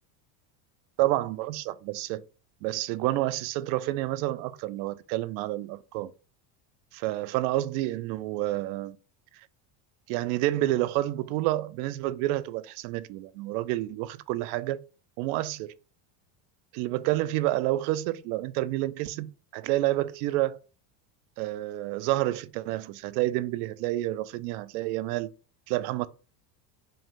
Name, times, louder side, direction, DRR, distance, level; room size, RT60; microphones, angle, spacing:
voice 1, 1.0-2.2 2.6-6.1 6.9-9.0 10.1-14.8 15.2-15.7 16.7-20.6 21.4-25.3 25.7-26.1, right 16 dB, 65° right, 0.5 m, -29 dB
5.3 x 2.2 x 3.6 m
cardioid pair, 145°, 48 cm